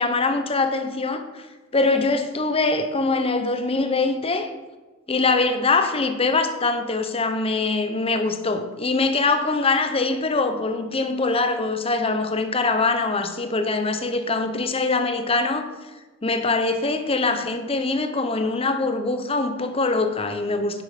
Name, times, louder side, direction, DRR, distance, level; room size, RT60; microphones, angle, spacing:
voice 1, 0.0-1.5 1.7-4.5 5.1-15.7 16.2-20.8, left 3 dB, 30° left, 7 dB, 0.9 m, -23 dB
10.5 x 8.0 x 5.0 m, 1.2 s
head